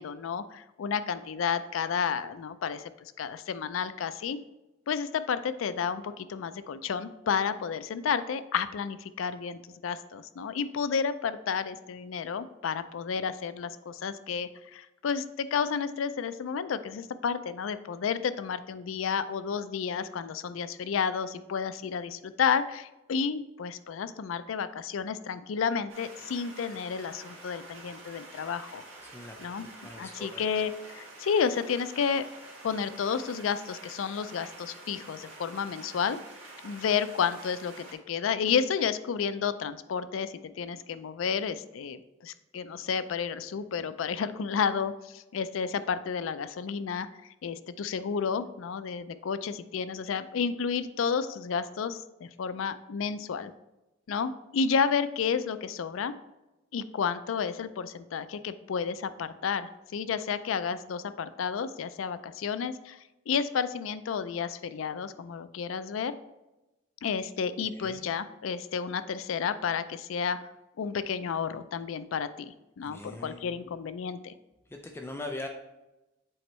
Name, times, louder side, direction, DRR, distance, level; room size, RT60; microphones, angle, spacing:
voice 1, 0.0-4.4 4.9-28.8 29.4-29.7 30.0-32.2 32.6-36.2 36.6-47.1 47.4-53.5 54.1-56.1 56.7-63.0 63.3-66.1 67.0-70.4 70.8-74.3, left 6 dB, 80° left, 13 dB, 0.4 m, -31 dB
sound 1, 25.9-37.9, right 2 dB, 85° right, 1.7 m, -48 dB
voice 2, 29.0-29.4 29.6-30.5 67.8-68.1 72.8-73.6 74.7-75.5, left 2 dB, 10° left, 3 dB, 0.4 m, -41 dB
7.7 x 4.4 x 3.1 m, 0.99 s
head